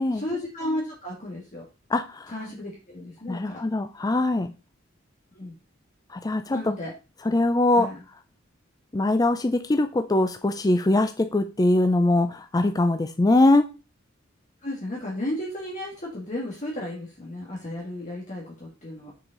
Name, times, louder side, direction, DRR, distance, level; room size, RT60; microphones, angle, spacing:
voice 1, 0.1-1.6 2.3-3.6 5.3-5.5 6.5-6.9 7.8-7.9 14.6-19.1, left 1 dB, 40° left, -2 dB, 1.6 m, -33 dB
voice 2, 1.9-2.3 3.3-4.5 6.1-6.7 7.2-7.9 8.9-13.6, left 2 dB, 20° left, 8 dB, 0.4 m, -22 dB
6.1 x 4.9 x 3.9 m, 0.30 s
head